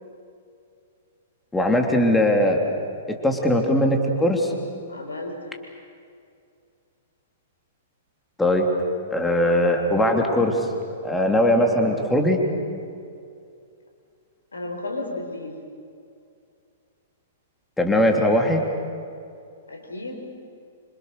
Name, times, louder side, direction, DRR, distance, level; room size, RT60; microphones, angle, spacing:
voice 1, 1.5-2.8 3.1-4.5 8.4-8.7 9.1-10.7 11.0-12.4 17.8-18.7, left 1 dB, 10° left, 2 dB, 3.1 m, -20 dB
voice 2, 4.9-5.5 14.5-15.6 19.7-20.2, left 2 dB, 80° left, 3 dB, 4.8 m, -33 dB
26.5 x 26.5 x 6.7 m, 2.4 s
figure-of-eight pair, 110°, 0 cm